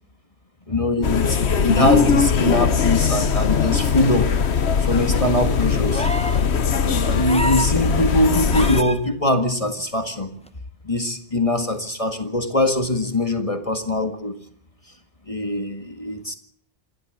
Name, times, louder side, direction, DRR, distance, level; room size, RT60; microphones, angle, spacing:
voice 1, 0.7-4.3 4.8-6.1 7.0-10.3 10.8-14.3 15.3-16.3, left 1 dB, 30° left, 7 dB, 1.8 m, -22 dB
sound 1, 1.0-8.8, left 6 dB, 75° left, 1.4 m, -20 dB
sound 2, 5.9-6.5 7.3-7.8 8.5-9.0 10.5-10.6, equal, 5° left, 0.9 m, -28 dB
27.5 x 12.0 x 7.8 m, 0.63 s
omnidirectional pair, 1.1 m